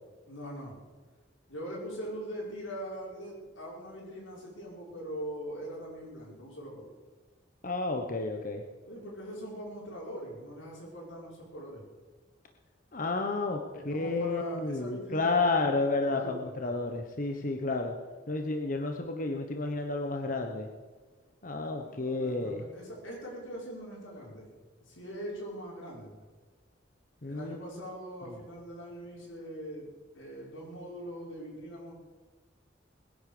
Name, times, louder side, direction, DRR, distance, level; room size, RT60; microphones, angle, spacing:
voice 1, 0.3-0.8 1.5-6.9 8.9-11.8 13.7-16.7 21.8-24.5 24.8-26.2 27.3-31.9, equal, 85° left, -3 dB, 5.8 m, -42 dB
voice 2, 7.6-8.6 12.9-17.9 18.3-20.7 21.4-22.6 27.2-27.6, left 3 dB, 45° left, 3 dB, 1.2 m, -31 dB
20.5 x 10.5 x 6.9 m, 1.4 s
head